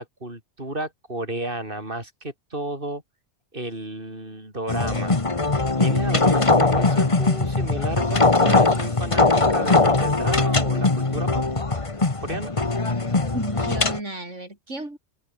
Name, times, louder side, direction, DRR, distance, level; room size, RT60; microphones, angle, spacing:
voice 1, 0.0-3.0 3.5-5.1 5.8-11.4 12.2-12.5, right 1 dB, 45° right, 6.5 m, -32 dB
sound 1, 4.7-14.0, left 3 dB, 25° left, 1.6 m, -21 dB
voice 2, 13.3-15.0, right 2 dB, 85° right, 6.5 m, -33 dB
omnidirectional pair, 1.2 m